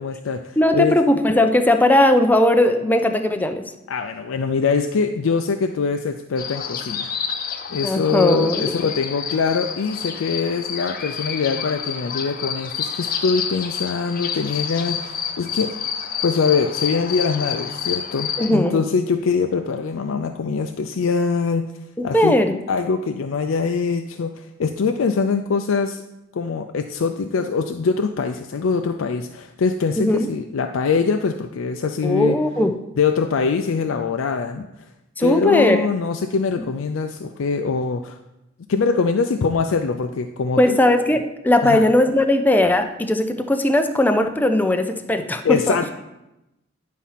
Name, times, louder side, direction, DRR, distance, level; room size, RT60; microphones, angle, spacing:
voice 1, 0.0-0.9 3.9-7.1 7.7-15.7 16.2-21.7 22.0-22.4 22.7-26.0 26.3-32.4 33.0-34.9 35.2-38.2 38.7-40.8 41.6-41.8 45.4-45.9, left 5 dB, 80° left, 6 dB, 0.4 m, -23 dB
voice 2, 0.6-3.6 7.8-8.7 18.4-18.8 22.1-22.5 30.0-30.3 32.0-32.7 35.2-35.8 36.6-36.7 40.6-45.8, left 1 dB, 10° left, 7 dB, 0.5 m, -18 dB
sound 1, 6.4-18.5, left 7 dB, 45° left, 0.7 m, -29 dB
10.0 x 4.2 x 5.7 m, 0.93 s
head